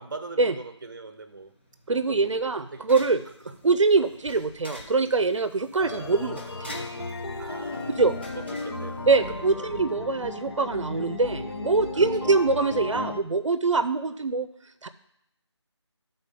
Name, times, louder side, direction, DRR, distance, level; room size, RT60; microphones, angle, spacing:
voice 1, 0.0-1.5 2.0-2.9 3.4-3.5 7.4-9.8 11.9-12.4, right 3 dB, 40° right, 9 dB, 0.6 m, -41 dB
sound 1, 1.3-9.7, equal, 20° left, 0.5 m, -47 dB
voice 2, 1.9-3.2 3.6-6.7 7.9-8.1 9.1-14.5 14.8-14.9, right 3 dB, 85° right, 11 dB, 0.6 m, -24 dB
sound 2, 5.8-13.2, left 2 dB, 55° left, 0.8 m, -35 dB
10.5 x 4.0 x 5.2 m, 0.78 s
figure-of-eight pair, 170°, 15 cm